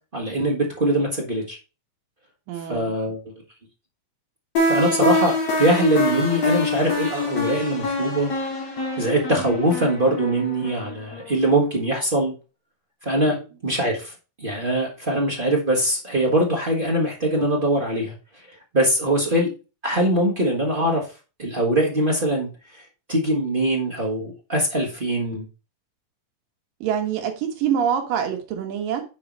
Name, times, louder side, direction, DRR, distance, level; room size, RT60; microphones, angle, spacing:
voice 1, 0.1-1.6 2.7-3.3 4.6-8.3 9.0-12.3 13.0-13.4 13.6-14.1 14.4-19.5 19.8-21.1 21.4-22.8 23.1-25.4, right 1 dB, 50° right, 0.6 m, -22 dB
voice 2, 2.5-2.9 13.3-13.4 26.8-29.0, right 8 dB, 85° right, 3.0 m, -25 dB
sound 1, 4.6-11.3, left 2 dB, 45° left, 3.4 m, -25 dB
8.5 x 4.7 x 4.0 m
omnidirectional pair, 3.8 m